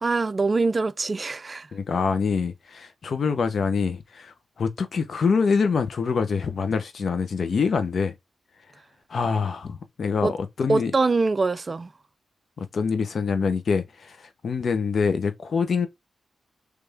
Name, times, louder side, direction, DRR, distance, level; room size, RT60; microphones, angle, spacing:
voice 1, 0.0-1.7 10.2-10.3 10.7-11.9, right 3 dB, 40° right, 0.3 m, -23 dB
voice 2, 1.7-8.1 9.1-10.9 12.6-15.9, left 5 dB, 65° left, 0.8 m, -25 dB
3.3 x 3.3 x 3.4 m
cardioid pair, 60°, 0 cm